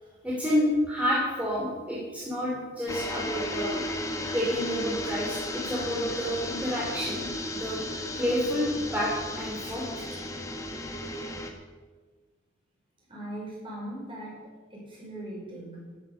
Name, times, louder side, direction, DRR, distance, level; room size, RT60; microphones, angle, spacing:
voice 1, 0.2-3.8 4.3-7.8 8.2-9.8, equal, 10° right, -6 dB, 3.2 m, -29 dB
sound 1, 2.9-11.5, left 1 dB, 20° left, 1.5 m, -34 dB
voice 2, 13.1-14.4 14.7-15.8, right 1 dB, 30° right, -4 dB, 6.2 m, -39 dB
12.5 x 11.5 x 7.1 m, 1.4 s
head